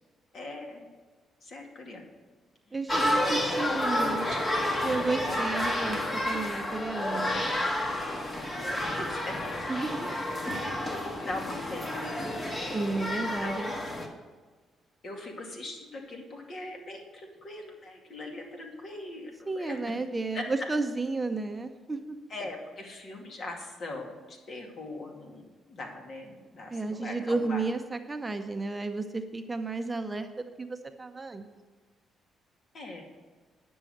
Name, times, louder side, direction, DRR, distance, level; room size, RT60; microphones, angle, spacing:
voice 1, 0.3-0.9 1.4-2.1 2.7-2.8 3.1-4.7 5.2-5.5 8.6-9.4 11.3-12.3 13.1-13.8 15.0-19.8 20.3-20.4 22.3-27.6 32.7-33.0, left 2 dB, 55° left, 1 dB, 2.3 m, -40 dB
voice 2, 2.7-4.2 4.8-7.4 9.7-10.2 12.7-13.7 19.5-22.2 26.7-31.5, right 3 dB, 20° right, 7 dB, 0.7 m, -32 dB
sound 1, 2.9-14.1, left 1 dB, 25° left, 1.6 m, -30 dB
9.8 x 6.3 x 7.8 m, 1.4 s
cardioid pair, 90°, 0 cm